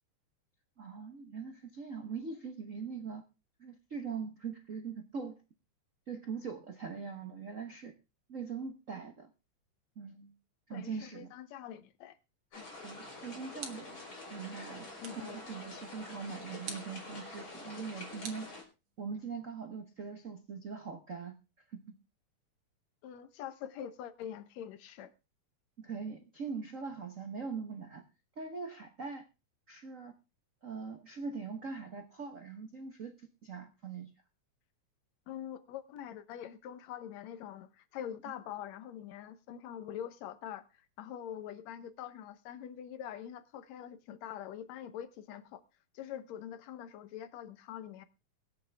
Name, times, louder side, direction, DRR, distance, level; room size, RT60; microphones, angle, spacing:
voice 1, 0.8-3.2 3.6-5.4 6.1-7.9 8.3-9.3 10.0-10.3 10.7-11.3 12.8-14.0 14.3-14.9 15.2-18.5 19.0-21.4 21.7-21.8 25.8-28.0 28.4-29.2 29.7-30.1 30.6-34.1, right 5 dB, 75° right, 0.7 m, -42 dB
voice 2, 10.7-12.2 12.5-12.7 15.0-15.4 23.0-25.1 35.3-45.6 45.9-48.1, left 10 dB, 70° left, 2.1 m, -44 dB
sound 1, 12.5-18.6, left 2 dB, 40° left, 5.5 m, -47 dB
sound 2, 13.6-14.1 15.0-15.4 16.6-17.0 18.2-19.1, right 6 dB, 60° right, 2.9 m, -47 dB
23.5 x 7.8 x 3.5 m
omnidirectional pair, 3.4 m